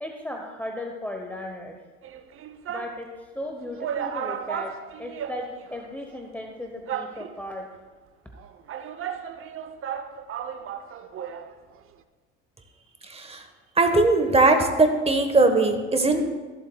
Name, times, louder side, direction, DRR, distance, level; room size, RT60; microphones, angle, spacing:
voice 1, 0.0-1.8 2.7-7.7, left 1 dB, 5° left, 2 dB, 0.9 m, -36 dB
sound 1, 2.0-3.0 3.5-3.6 3.8-5.8 6.1-6.2 6.9-7.6 8.4-11.5 11.8-11.9, right 8 dB, 40° right, 0.7 m, -34 dB
voice 2, 13.1-13.4 13.8-16.2, right 3 dB, 20° right, 6 dB, 1.2 m, -20 dB
14.5 x 7.7 x 2.3 m, 1.4 s
hypercardioid pair, 75°, 33 cm